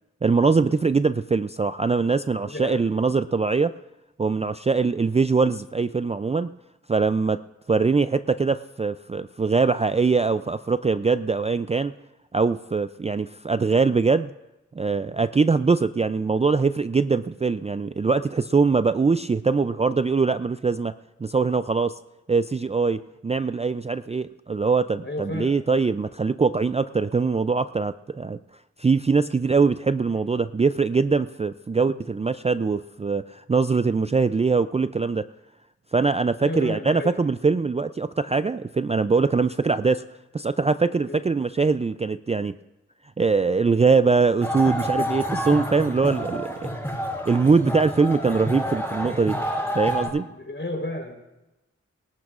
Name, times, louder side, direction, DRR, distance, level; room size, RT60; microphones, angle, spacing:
voice 1, 0.2-3.7 4.2-6.5 6.9-7.4 7.7-11.9 12.3-14.3 14.8-20.9 21.2-21.9 22.3-28.4 28.8-35.2 35.9-40.0 40.3-42.5 43.2-46.7 47.3-49.4 49.7-50.3, right 4 dB, 20° right, 12 dB, 0.4 m, -22 dB
voice 2, 2.4-2.8 25.0-25.5 36.4-37.1 41.1-41.2 50.3-51.1, left 1 dB, 40° left, 2 dB, 4.0 m, -32 dB
sound 1, 44.4-50.1, equal, 10° left, 5.6 m, -28 dB
24.5 x 12.0 x 2.5 m, 0.99 s
cardioid pair, 45°, 29 cm